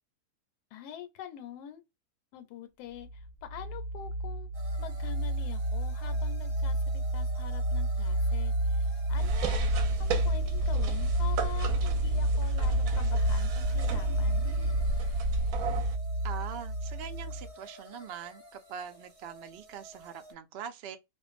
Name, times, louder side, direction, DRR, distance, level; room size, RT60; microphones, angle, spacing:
voice 1, 0.7-1.8 2.3-4.5 4.8-9.6 10.0-14.5, left 10 dB, 85° left, 1.1 m, -45 dB
sound 1, 3.0-17.5, right 1 dB, 65° left, 0.8 m, -30 dB
sound 2, 4.5-20.3, equal, 25° right, 1.0 m, -52 dB
sound 3, 9.2-16.0, right 1 dB, 70° right, 0.9 m, -34 dB
voice 2, 16.2-21.0, right 8 dB, 85° right, 0.5 m, -42 dB
2.5 x 2.2 x 2.3 m
omnidirectional pair, 1.6 m